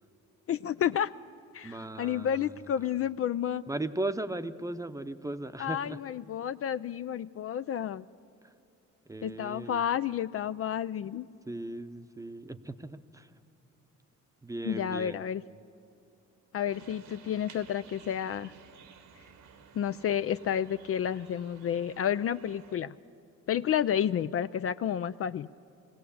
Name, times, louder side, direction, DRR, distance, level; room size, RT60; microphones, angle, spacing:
voice 1, 0.5-1.1 1.5-3.6 5.6-8.0 9.2-11.3 14.6-15.4 16.5-18.5 19.7-22.9 23.5-25.5, left 9 dB, 50° left, 13 dB, 0.4 m, -30 dB
voice 2, 1.6-2.9 3.7-6.0 9.1-9.8 11.0-11.1 11.5-13.3 14.4-15.2, right 2 dB, 10° right, 9 dB, 0.8 m, -37 dB
sound 1, 16.7-22.8, right 6 dB, 85° right, 1.7 m, -54 dB
22.0 x 16.5 x 8.5 m, 2.6 s
cardioid pair, 90°, 30 cm